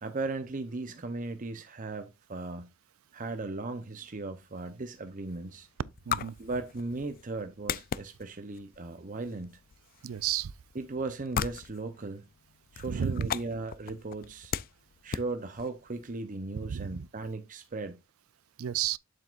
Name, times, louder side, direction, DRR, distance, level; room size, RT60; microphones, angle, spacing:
voice 1, 0.0-2.7 3.1-5.7 6.4-9.6 10.7-12.2 12.7-14.5 15.0-18.0, right 3 dB, 40° right, 0.7 m, -37 dB
sound 1, 4.4-16.2, left 8 dB, 45° left, 0.4 m, -40 dB
voice 2, 10.0-10.5 12.8-13.3 16.7-17.0 18.6-19.0, right 9 dB, 80° right, 0.4 m, -31 dB
8.3 x 7.5 x 2.5 m
head